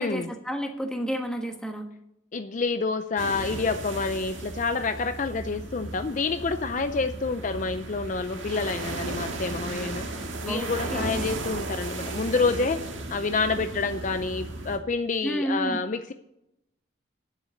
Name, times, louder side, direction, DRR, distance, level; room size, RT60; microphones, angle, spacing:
voice 1, 0.0-1.9 10.4-11.3 15.2-15.8, equal, 5° left, 3 dB, 1.3 m, -31 dB
voice 2, 2.3-12.8 13.1-16.1, left 4 dB, 40° left, 9 dB, 0.5 m, -28 dB
sound 1, 3.2-14.8, right 2 dB, 80° right, 1.8 m, -35 dB
10.0 x 7.8 x 6.4 m, 0.83 s
head